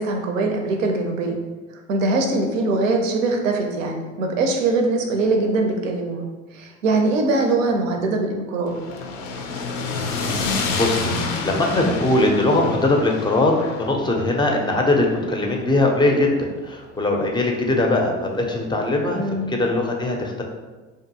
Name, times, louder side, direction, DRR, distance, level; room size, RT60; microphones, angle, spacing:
voice 1, 0.0-1.4 1.9-6.2 6.5-8.7 19.2-19.5, right 2 dB, 90° right, 2 dB, 0.5 m, -22 dB
sound 1, 8.7-16.9, left 3 dB, 80° left, 0.5 m, -29 dB
voice 2, 10.4-20.4, left 2 dB, 15° left, 1 dB, 0.4 m, -21 dB
2.6 x 2.4 x 2.7 m, 1.3 s
hypercardioid pair, 65°, 37 cm